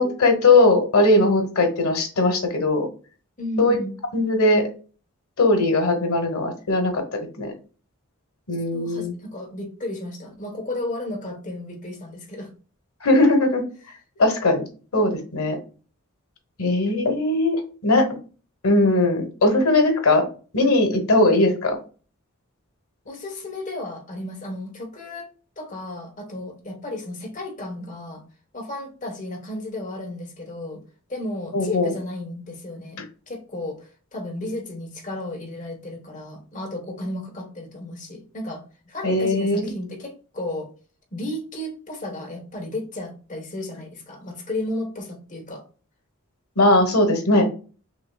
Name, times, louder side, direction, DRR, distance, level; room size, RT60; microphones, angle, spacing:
voice 1, 0.0-2.9 3.6-3.8 4.1-4.6 5.4-7.0 7.4-7.5 8.5-9.1 13.0-13.6 14.2-14.6 14.9-15.6 16.6-18.1 18.6-20.3 20.5-21.8 31.5-31.9 39.0-39.7 46.6-47.5, left 2 dB, 90° left, 4 dB, 1.3 m, -19 dB
voice 2, 3.4-3.9 8.7-12.5 23.1-25.3 25.6-28.2 28.5-30.8 31.1-33.8 34.1-40.7 41.1-45.6, left 1 dB, 35° left, 2 dB, 1.2 m, -33 dB
5.9 x 2.8 x 2.3 m, 0.37 s
head